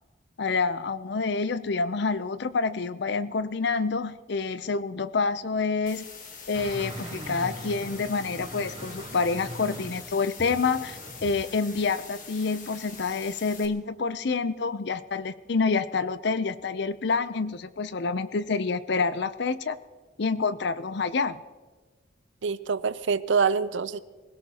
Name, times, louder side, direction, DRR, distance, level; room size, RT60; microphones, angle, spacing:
voice 1, 0.4-6.1 6.5-19.8 20.2-21.4, left 4 dB, 55° left, 14 dB, 0.6 m, -28 dB
sound 1, 5.9-13.7, left 5 dB, 40° left, 1.5 m, -44 dB
sound 2, 6.5-11.4 11.8-11.9, right 1 dB, 25° right, 3.0 m, -40 dB
voice 2, 22.4-24.0, right 5 dB, 70° right, 15 dB, 0.6 m, -25 dB
24.5 x 17.0 x 2.9 m, 1.4 s
head